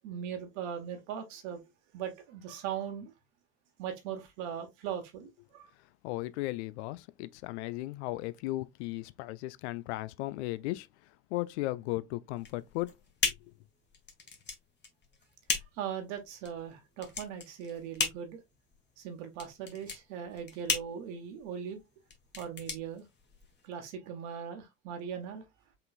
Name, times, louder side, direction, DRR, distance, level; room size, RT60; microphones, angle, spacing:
voice 1, 0.0-1.6 1.9-3.1 3.8-5.7 15.7-18.4 19.0-21.8 22.4-23.0 23.6-25.4, right 8 dB, 60° right, 1.5 m, -39 dB
voice 2, 6.0-10.9 11.3-12.9 13.2-13.4, left 18 dB, 55° left, 0.5 m, -36 dB
sound 1, 12.4-23.7, left 5 dB, 25° left, 1.6 m, -37 dB
5.5 x 3.8 x 2.4 m
figure-of-eight pair, 65°, 40 cm